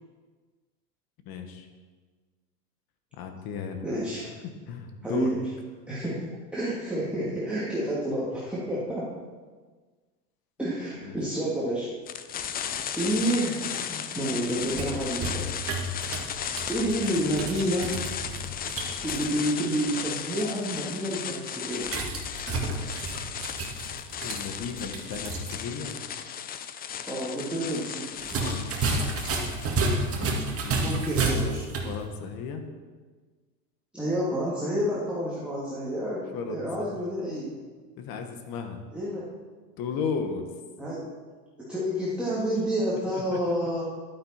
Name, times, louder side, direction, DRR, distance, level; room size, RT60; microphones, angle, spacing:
voice 1, 1.2-1.7 3.1-3.9 4.1-4.3 4.7-5.4 11.0-11.2 24.2-25.9 28.3-29.0 29.9-31.0 31.8-32.6 36.3-36.9 38.0-38.8 39.8-40.5 43.1-43.4, left 5 dB, 45° left, 6 dB, 1.6 m, -35 dB
voice 2, 3.8-4.3 5.0-5.4 5.9-9.1 10.6-11.9 13.0-15.8 16.7-17.9 19.0-22.0 27.0-28.3 30.8-31.7 33.9-37.6 38.9-39.3 40.8-41.1 41.6-43.8, equal, ahead, -8 dB, 2.4 m, -29 dB
sound 1, 12.1-29.7, left 8 dB, 20° left, 0.5 m, -35 dB
sound 2, 14.5-19.2 21.8-25.6 25.9-26.0 28.2-31.9, right 2 dB, 30° right, 2.0 m, -31 dB
11.5 x 8.8 x 4.4 m, 1.4 s
hypercardioid pair, 100°, 49 cm